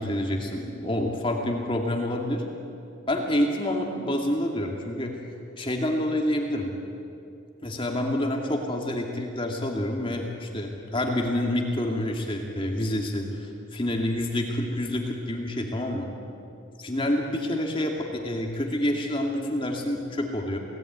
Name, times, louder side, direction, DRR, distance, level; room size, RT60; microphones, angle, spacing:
voice 1, 0.0-2.4 3.1-5.2 5.6-6.7 7.6-16.1 16.8-20.6, left 1 dB, 25° left, 1 dB, 2.5 m, -28 dB
29.5 x 18.5 x 9.5 m, 2.7 s
head